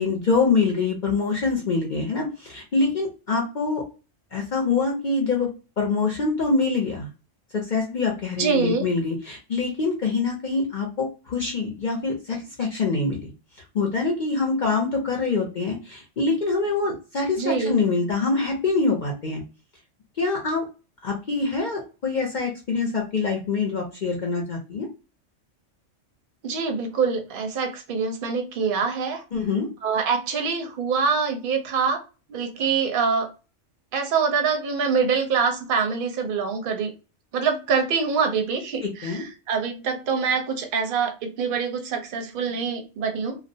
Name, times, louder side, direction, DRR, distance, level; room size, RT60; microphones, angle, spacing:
voice 1, 0.0-3.8 4.3-5.5 5.8-7.1 7.5-13.3 13.7-19.4 20.2-20.6 21.0-24.9 29.3-29.7 38.8-39.2, left 4 dB, 50° left, 0.6 m, -25 dB
voice 2, 8.4-8.8 17.4-17.7 26.4-29.2 29.8-32.0 32.3-33.3 33.9-36.9 37.3-43.3, right 5 dB, 55° right, 0.7 m, -25 dB
2.4 x 2.0 x 2.6 m
omnidirectional pair, 1.3 m